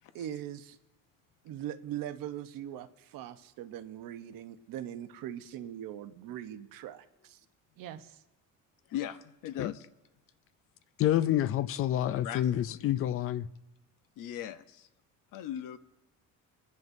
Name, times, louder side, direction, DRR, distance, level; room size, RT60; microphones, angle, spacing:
voice 1, 0.1-0.8 1.4-7.4 7.8-8.2, right 11 dB, 90° right, 0.9 m, -41 dB
voice 2, 8.9-9.9 12.2-12.5 14.2-14.9 15.3-15.8, left 11 dB, 75° left, 0.8 m, -38 dB
voice 3, 11.0-13.5, left 12 dB, 45° left, 0.4 m, -28 dB
25.0 x 10.5 x 2.7 m
cardioid pair, 180°, 33 cm